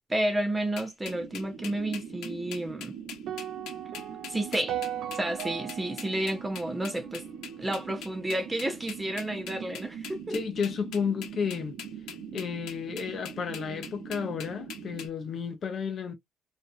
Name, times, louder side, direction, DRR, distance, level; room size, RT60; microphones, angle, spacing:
voice 1, 0.1-3.0 4.3-4.8 5.1-7.2 7.6-10.4, right 1 dB, 10° right, 0.5 m, -31 dB
sound 1, 0.8-15.1, left 8 dB, 90° left, 0.8 m, -42 dB
sound 2, 1.0-15.1, right 7 dB, 80° right, 1.0 m, -43 dB
sound 3, 3.3-7.6, right 11 dB, 60° right, 0.3 m, -38 dB
voice 2, 10.3-11.8 12.3-16.1, left 6 dB, 40° left, 0.6 m, -32 dB
2.6 x 2.4 x 2.4 m
cardioid pair, 155°, 0 cm